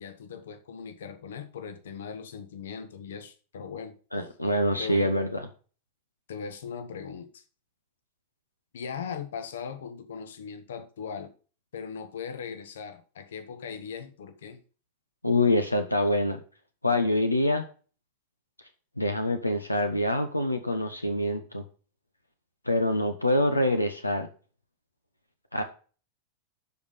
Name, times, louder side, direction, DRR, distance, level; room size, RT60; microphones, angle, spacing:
voice 1, 0.0-4.0 4.8-5.1 6.3-7.4 8.7-11.3 11.7-14.6, left 6 dB, 60° left, 1.2 m, -39 dB
voice 2, 4.1-5.4 15.2-16.4 16.8-17.7 19.0-21.6 22.7-24.3 25.5-25.6, left 1 dB, 85° left, 1.1 m, -25 dB
12.0 x 5.0 x 5.2 m
figure-of-eight pair, 90°, 0 cm